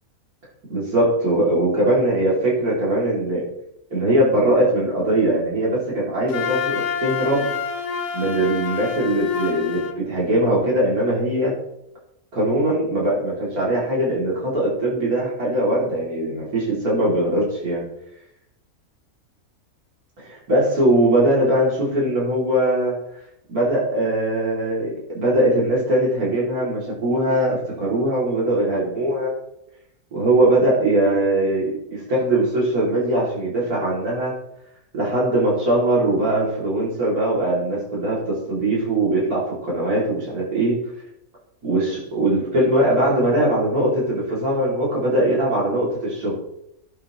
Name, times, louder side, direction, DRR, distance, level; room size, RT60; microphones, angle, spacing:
voice 1, 0.7-3.5 3.9-7.5 8.1-11.6 12.3-17.8 20.2-23.0 23.5-29.3 30.1-34.3 34.9-40.8 41.6-46.4, right 1 dB, 85° right, -6 dB, 3.3 m, -21 dB
Wind instrument woodwind instrument, 6.3-10.0, left 7 dB, 80° left, 1.3 m, -27 dB
13.5 x 7.2 x 3.1 m, 0.80 s
omnidirectional pair, 1.5 m